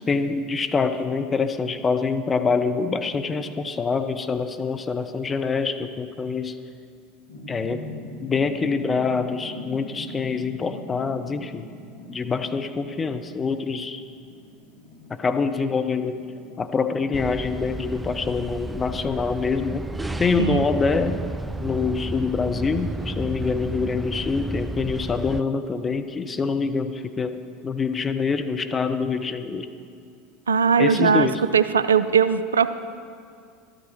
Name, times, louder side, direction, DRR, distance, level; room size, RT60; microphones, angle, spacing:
voice 1, 0.1-6.6 7.5-7.9 8.2-11.7 12.1-14.0 15.1-16.2 16.6-19.9 20.2-21.2 21.6-29.7 30.8-31.4, left 5 dB, 25° left, 8 dB, 0.8 m, -25 dB
sound 1, 7.3-23.7, left 2 dB, 75° left, 1.8 m, -44 dB
sound 2, 17.1-25.4, right 2 dB, 10° right, 0.3 m, -32 dB
voice 2, 30.5-32.7, right 6 dB, 80° right, 13 dB, 0.4 m, -20 dB
13.0 x 12.5 x 4.6 m, 2.3 s
figure-of-eight pair, 75°, 0 cm